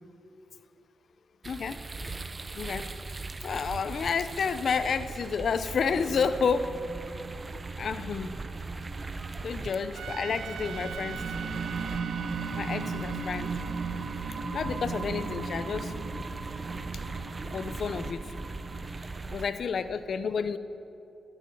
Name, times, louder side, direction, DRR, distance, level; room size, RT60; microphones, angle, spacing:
voice 1, 1.4-1.8 2.5-2.9 3.4-6.7 7.8-8.4 9.4-11.2 12.5-13.5 14.5-15.9 17.5-18.3 19.3-20.6, left 6 dB, 60° left, 12 dB, 0.9 m, -30 dB
sound 1, 1.4-19.5, right 3 dB, 30° right, 1.2 m, -39 dB
sound 2, 5.9-18.8, right 4 dB, 55° right, 1.9 m, -38 dB
Trumpet, 10.0-15.1, right 8 dB, 85° right, 0.6 m, -43 dB
24.5 x 14.0 x 8.6 m, 3.0 s
cardioid pair, 85°, 0 cm